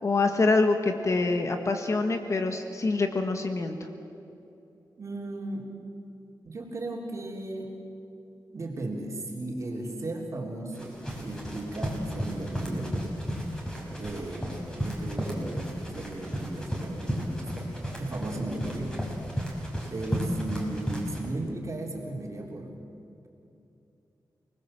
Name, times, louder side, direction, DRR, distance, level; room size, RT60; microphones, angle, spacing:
voice 1, 0.0-3.8, left 3 dB, 45° left, 5 dB, 1.6 m, -25 dB
voice 2, 5.0-5.7 6.5-7.7 8.5-11.0 11.2-13.0 14.0-14.5 14.8-19.0 19.5-19.6 19.9-22.7, right 2 dB, 45° right, -1 dB, 3.8 m, -36 dB
sound 1, 10.7-21.3, equal, 10° left, 6.1 m, -33 dB
30.0 x 20.0 x 7.8 m, 2.8 s
wide cardioid pair, 105°, 7 cm